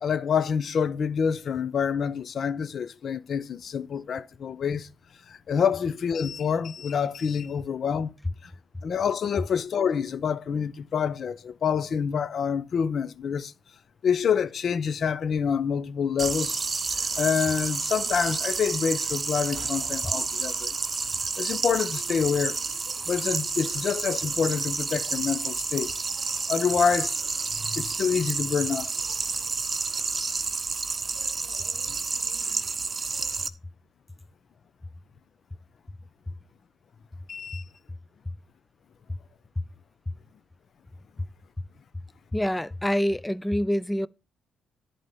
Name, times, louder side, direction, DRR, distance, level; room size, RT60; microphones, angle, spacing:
voice 1, 0.0-4.9 5.3-8.1 8.4-8.5 8.8-13.5 14.0-16.6 17.2-20.7 21.4-22.6 23.0-25.9 26.5-27.2 27.6-28.9 37.3-37.6, left 7 dB, 55° left, 0.8 m, -27 dB
sound 1, 16.2-33.5, right 4 dB, 35° right, 0.9 m, -30 dB
voice 2, 42.3-44.1, equal, 10° left, 0.5 m, -26 dB
11.0 x 4.3 x 6.9 m
cardioid pair, 90°, 0 cm